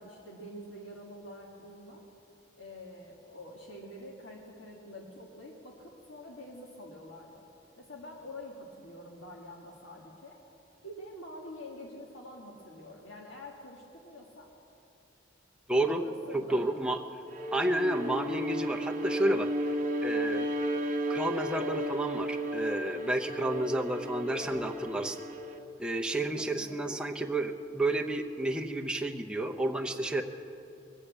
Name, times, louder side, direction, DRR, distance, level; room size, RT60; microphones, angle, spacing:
voice 1, 0.0-2.1 2.6-7.4 7.8-10.4 10.8-14.5 15.9-16.8 23.4-24.7 26.4-26.9, left 1 dB, 80° left, -1 dB, 1.6 m, -47 dB
voice 2, 15.7-16.0 16.3-17.0 17.5-19.7 20.0-20.5 21.1-25.2 25.8-30.2, right 1 dB, 5° right, 2 dB, 0.7 m, -31 dB
Bowed string instrument, 17.3-25.7, equal, 40° right, 1.0 m, -34 dB
21.5 x 8.5 x 7.2 m, 2.8 s
head